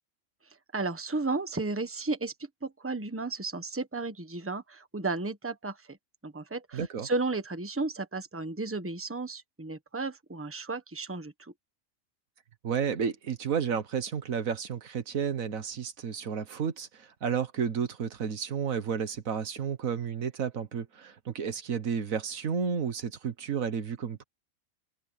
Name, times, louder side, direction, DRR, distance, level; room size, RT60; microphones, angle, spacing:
voice 1, 0.7-2.3 2.6-6.0 6.2-11.5, right 3 dB, 10° right, 1.2 m, -33 dB
voice 2, 6.7-7.1 12.6-24.2, right 7 dB, 80° right, 1.7 m, -32 dB
omnidirectional pair, 1.4 m